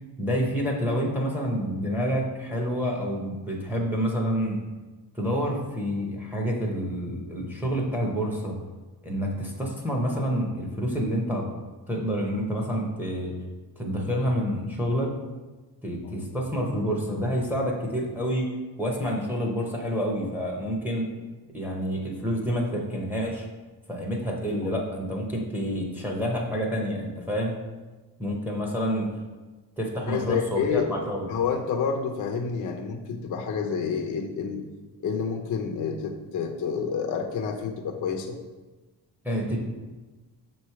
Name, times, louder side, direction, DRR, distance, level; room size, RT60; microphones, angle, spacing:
voice 1, 0.2-4.6 5.1-8.6 9.0-11.5 11.9-13.4 13.8-15.1 15.8-18.5 18.8-21.1 21.5-23.5 23.9-27.6 28.2-29.1 29.8-31.3 39.2-39.6, equal, 5° right, -1 dB, 0.8 m, -28 dB
voice 2, 30.1-30.9 31.3-34.7 35.0-38.4, left 6 dB, 45° left, 3 dB, 0.5 m, -28 dB
6.2 x 3.1 x 5.6 m, 1.2 s
cardioid pair, 160°, 43 cm